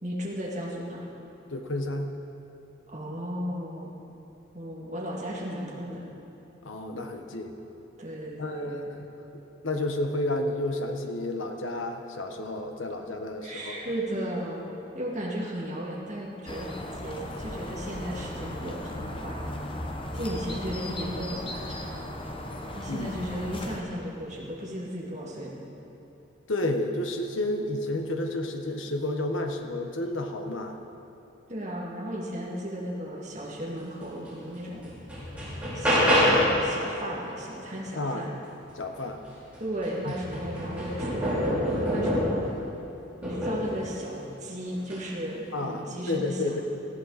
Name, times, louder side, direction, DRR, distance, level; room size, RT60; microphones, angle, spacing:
voice 1, 0.0-1.1 2.9-4.0 4.5-6.0 8.0-8.9 13.4-14.7 14.9-19.4 20.1-22.0 22.8-25.5 31.5-34.9 35.7-38.3 39.6-42.3 43.2-46.6, equal, 35° right, -5 dB, 2.3 m, -35 dB
voice 2, 1.5-2.1 6.6-7.5 8.4-9.1 9.3-13.9 22.9-23.2 26.5-30.8 37.9-38.3 38.7-39.2 40.0-40.1 45.5-46.6, left 1 dB, 85° left, 4 dB, 1.2 m, -31 dB
sound 1, 16.5-23.8, left 1 dB, 25° left, 0.9 m, -36 dB
sound 2, 34.3-34.4 34.8-36.6 39.0-39.1 39.5-42.5 43.2-43.8 44.8-45.1, equal, 5° right, 4.0 m, -26 dB
18.5 x 13.5 x 4.2 m, 2.9 s
head